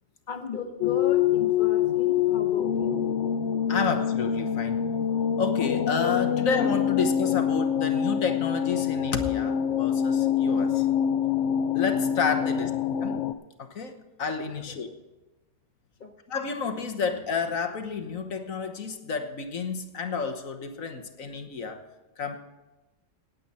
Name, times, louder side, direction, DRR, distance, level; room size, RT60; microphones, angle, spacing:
voice 1, 0.3-3.1 12.4-12.7 14.5-15.0 16.0-16.1, left 5 dB, 30° left, 5 dB, 1.3 m, -36 dB
sound 1, 0.8-13.3, left 9 dB, 80° left, 0.6 m, -25 dB
voice 2, 3.7-4.8 5.4-10.9 11.7-12.7 13.0-13.3 13.6-14.9 16.3-21.8 22.2-22.4, left 5 dB, 50° left, 7 dB, 1.4 m, -30 dB
18.0 x 8.4 x 4.2 m, 1.1 s
omnidirectional pair, 1.9 m